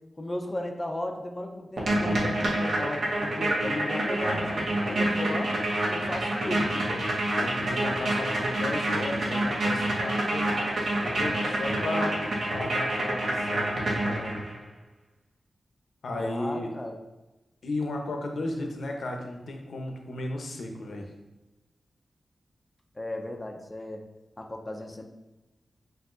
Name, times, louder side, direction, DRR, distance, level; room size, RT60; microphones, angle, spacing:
voice 1, 0.2-5.6 5.9-7.0 16.1-17.0 22.9-24.0 24.4-25.1, left 1 dB, 20° left, 2 dB, 0.5 m, -35 dB
sound 1, 1.8-14.6, right 1 dB, 75° right, 1.0 m, -27 dB
voice 2, 7.3-12.2 12.5-14.4 16.0-16.7 17.6-21.1, left 2 dB, 80° left, 2 dB, 0.6 m, -34 dB
7.6 x 2.6 x 2.5 m, 1.1 s
wide cardioid pair, 85°, 0 cm